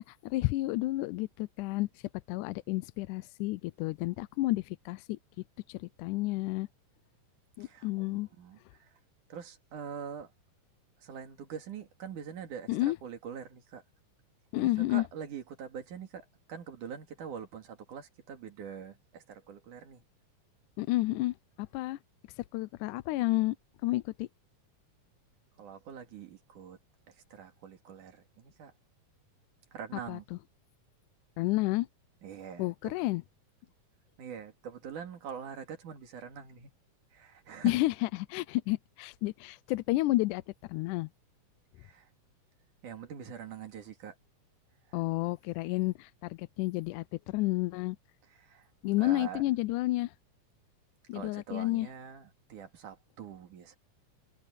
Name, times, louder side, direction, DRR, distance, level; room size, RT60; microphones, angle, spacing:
voice 1, 0.0-1.9 2.3-5.2 5.7-6.7 7.6-8.3 12.7-13.0 14.5-15.0 20.8-22.0 22.5-23.6 23.8-24.3 30.1-30.4 31.4-31.9 32.6-33.2 37.6-40.4 40.7-41.1 44.9-48.0 48.8-50.1 51.1-51.9, left 18 dB, 80° left, 1.9 m, -31 dB
voice 2, 7.6-8.9 9.3-10.3 11.0-13.8 14.6-20.0 25.6-26.8 27.3-28.7 29.7-30.3 32.2-33.1 34.2-36.7 37.1-37.9 41.8-42.1 42.8-44.1 44.9-45.0 48.2-49.7 51.1-53.8, right 7 dB, 70° right, 3.9 m, -44 dB
omnidirectional pair, 3.8 m